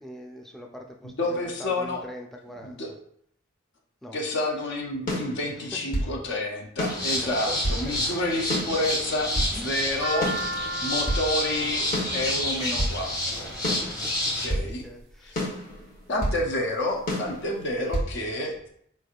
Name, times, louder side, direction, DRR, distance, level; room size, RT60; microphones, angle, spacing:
voice 1, 0.0-3.0 4.0-4.2 5.6-6.2 7.1-8.2 9.1-9.8 13.6-14.2 14.8-15.5, left 1 dB, ahead, 1 dB, 0.4 m, -43 dB
voice 2, 1.0-2.0 2.6-2.9 4.1-10.5 10.8-11.9 12.1-13.5 14.4-14.8 15.2-15.5 16.1-18.7, left 1 dB, 60° left, 1 dB, 0.6 m, -29 dB
sound 1, 5.1-6.1 6.8-7.9 8.5-9.6 10.2-11.3 11.9-13.0 13.6-14.7 15.3-16.4 17.1-18.1, equal, 40° left, 1.0 m, -30 dB
sound 2, 6.9-14.5, left 1 dB, 20° left, 0.8 m, -30 dB
sound 3, 9.6-13.8 14.6-15.1 15.7-16.4 16.7-16.8 17.0-17.8, equal, 85° right, 0.6 m, -35 dB
4.3 x 3.2 x 2.4 m, 0.66 s
head